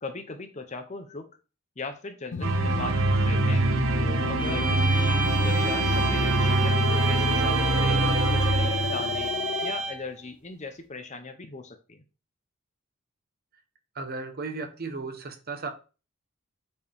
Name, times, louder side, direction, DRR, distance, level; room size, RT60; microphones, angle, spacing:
voice 1, 0.0-1.3 1.8-3.0 3.2-3.7 4.0-9.4 9.6-12.0, left 3 dB, 35° left, 0.8 m, -39 dB
sound 1, 2.3-9.7, left 5 dB, 55° left, 0.4 m, -33 dB
sound 2, 2.4-9.5, right 3 dB, 70° right, 0.8 m, -24 dB
sound 3, 4.4-10.1, right 3 dB, 5° right, 1.5 m, -31 dB
voice 2, 13.9-15.7, right 4 dB, 45° right, 1.1 m, -35 dB
8.1 x 4.6 x 3.5 m
head